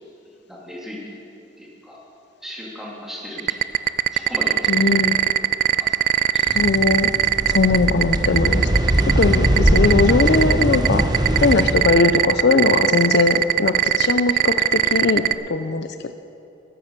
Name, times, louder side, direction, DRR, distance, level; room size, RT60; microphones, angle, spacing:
voice 1, 0.5-1.2 1.6-2.0 2.4-3.6 4.1-5.1 5.8-6.6, left 1 dB, ahead, -4 dB, 2.5 m, -36 dB
sound 1, 3.4-15.3, right 12 dB, 45° right, 0.3 m, -18 dB
voice 2, 4.7-5.2 6.5-7.1 7.5-8.7 9.0-11.0 11.4-15.9, left 4 dB, 55° left, 9 dB, 0.5 m, -19 dB
sound 2, 6.5-11.7, right 1 dB, 20° right, 0.9 m, -21 dB
12.0 x 9.5 x 7.2 m, 2.7 s
head